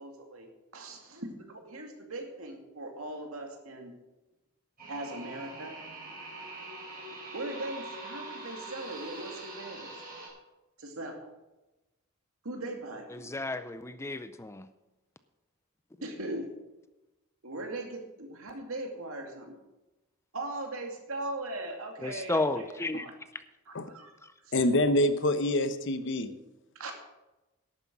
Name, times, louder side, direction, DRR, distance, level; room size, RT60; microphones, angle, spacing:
voice 1, 0.0-3.9 4.9-5.7 7.3-9.9 10.8-11.2 12.4-13.4 16.0-16.5 17.4-19.5 20.3-23.1 23.7-24.1 24.4-24.6 26.7-26.9, right 2 dB, 75° right, 2.5 m, -39 dB
sound 1, 4.8-10.3, right 2 dB, 45° right, 4.7 m, -43 dB
voice 2, 13.2-14.6 22.0-23.0, left 2 dB, 15° left, 0.4 m, -32 dB
voice 3, 24.5-26.3, left 1 dB, 60° left, 0.9 m, -26 dB
11.5 x 9.3 x 6.2 m
head